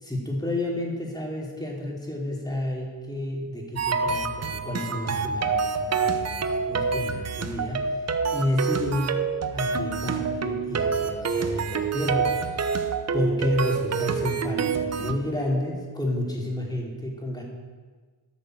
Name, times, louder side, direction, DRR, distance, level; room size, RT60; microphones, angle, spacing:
voice 1, 0.0-9.3 9.5-12.8 13.1-17.4, left 1 dB, 10° left, -2 dB, 3.3 m, -30 dB
sound 1, 3.8-15.1, right 5 dB, 35° right, 0.8 m, -27 dB
13.0 x 6.6 x 6.3 m, 1.4 s
cardioid pair, 80°, 44 cm